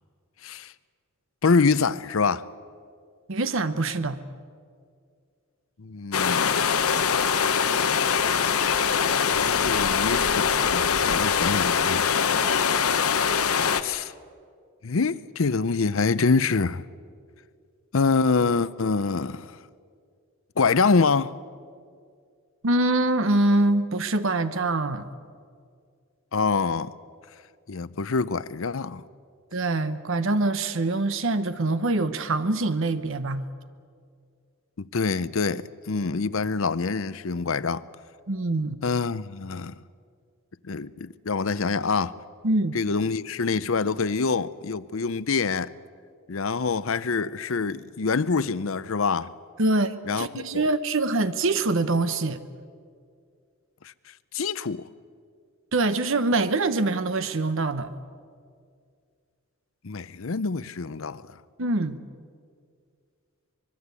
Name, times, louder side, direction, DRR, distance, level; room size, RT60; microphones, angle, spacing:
voice 1, 0.4-0.7 1.4-2.4 5.8-6.6 9.3-12.2 13.7-14.1 14.8-16.8 17.9-19.6 20.6-21.3 26.3-26.9 27.7-29.0 34.8-37.8 38.8-39.7 40.6-42.1 42.7-45.7 46.3-49.3 50.1-50.6 54.3-54.8 59.8-61.3, left 4 dB, 65° left, 0.7 m, -25 dB
voice 2, 3.3-4.2 22.6-25.1 29.5-33.5 38.3-38.8 42.4-42.7 49.6-52.4 55.7-57.9 61.6-62.0, right 2 dB, 60° right, 1.0 m, -24 dB
sound 1, 6.1-13.8, left 7 dB, 85° left, 1.0 m, -23 dB
24.5 x 22.5 x 8.3 m
head